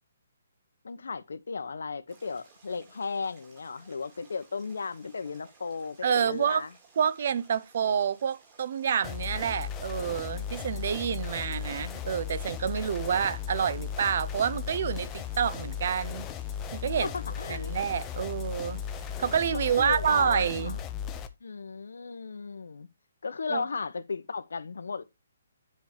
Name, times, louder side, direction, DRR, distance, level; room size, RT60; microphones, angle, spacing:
voice 1, 0.8-6.7 17.0-17.8 19.5-20.7 21.4-22.9 23.2-25.0, left 4 dB, 85° left, 1.0 m, -35 dB
sound 1, 2.1-19.7, right 4 dB, 20° right, 2.1 m, -59 dB
voice 2, 6.0-6.7 7.0-16.3 16.7-17.1 17.5-18.8 19.2-20.8 23.5-23.6, right 8 dB, 35° right, 0.5 m, -28 dB
sound 2, 9.0-21.3, left 8 dB, 10° left, 0.5 m, -36 dB
9.6 x 4.7 x 4.5 m
hypercardioid pair, 180°, 0 cm